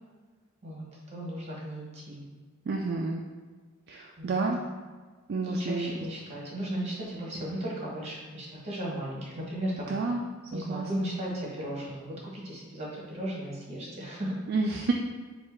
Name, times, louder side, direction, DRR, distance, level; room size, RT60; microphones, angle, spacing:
voice 1, 0.6-2.2 4.2-4.4 5.4-10.0 10.5-14.4, right 1 dB, 30° right, -4 dB, 1.2 m, -35 dB
voice 2, 2.7-3.2 3.9-4.6 5.3-5.9 9.9-10.2 10.5-11.1 14.5-14.9, right 3 dB, 50° right, 1 dB, 0.3 m, -30 dB
4.5 x 2.4 x 4.4 m, 1.4 s
head